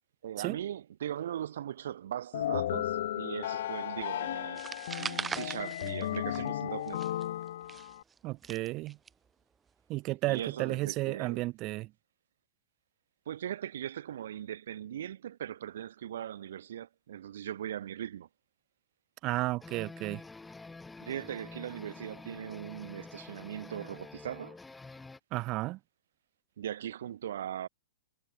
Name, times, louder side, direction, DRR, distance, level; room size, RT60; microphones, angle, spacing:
voice 1, 0.2-4.6 5.0-7.0 10.3-11.4 13.3-18.3 21.0-24.6 26.6-27.7, right 10 dB, 70° right, 1.8 m, -39 dB
sound 1, 2.3-8.0, left 12 dB, 65° left, 1.4 m, -35 dB
sound 2, 4.6-6.6 6.9-9.1, right 6 dB, 15° right, 0.4 m, -40 dB
voice 2, 8.2-9.0 9.9-11.9 19.2-20.2 25.3-25.8, right 19 dB, 35° right, 1.0 m, -33 dB
sound 3, 19.6-25.2, left 3 dB, 5° left, 1.9 m, -48 dB
hypercardioid pair, 140°, 0 cm